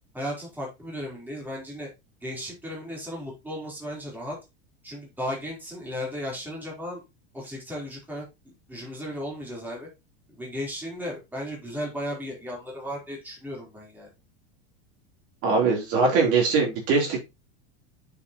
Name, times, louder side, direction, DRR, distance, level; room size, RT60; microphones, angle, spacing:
voice 1, 0.1-1.9 2.2-4.4 4.8-7.0 7.3-9.9 10.3-14.1, equal, 5° right, -3 dB, 4.2 m, -35 dB
voice 2, 15.4-17.2, right 4 dB, 45° right, -1 dB, 3.9 m, -22 dB
7.6 x 7.2 x 3.1 m, 0.24 s
supercardioid pair, 160°, 34 cm